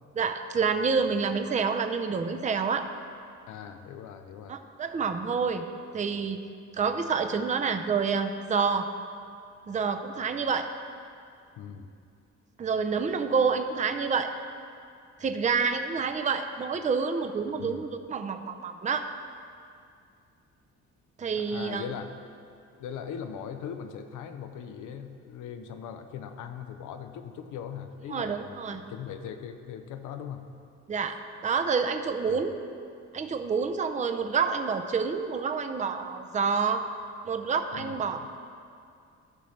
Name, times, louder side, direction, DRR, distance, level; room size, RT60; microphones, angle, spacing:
voice 1, 0.2-2.9 4.5-5.6 5.9-6.4 6.7-8.9 9.7-10.7 12.6-14.3 15.2-19.1 21.2-21.8 28.1-28.8 30.9-31.2 31.4-32.6 33.1-36.9 37.3-38.3, right 5 dB, 25° right, 7 dB, 0.5 m, -28 dB
voice 2, 3.5-4.6 11.6-11.9 17.5-17.8 21.4-22.1 22.8-30.5 32.3-32.5 37.7-38.3, left 8 dB, 85° left, 8 dB, 0.7 m, -40 dB
14.0 x 5.7 x 3.2 m, 2.4 s
cardioid pair, 90°, 30 cm